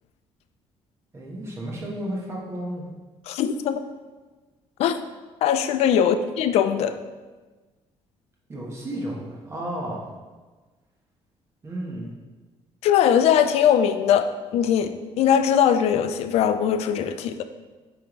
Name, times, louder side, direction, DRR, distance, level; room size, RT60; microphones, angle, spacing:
voice 1, 1.1-2.8 6.0-6.1 8.5-10.1 11.6-12.1, right 1 dB, 25° right, -3 dB, 1.3 m, -32 dB
voice 2, 3.3-3.8 4.8-5.0 5.4-7.0 12.8-17.4, left 8 dB, 70° left, 10 dB, 0.4 m, -21 dB
9.7 x 3.5 x 3.1 m, 1.3 s
cardioid pair, 165°, 11 cm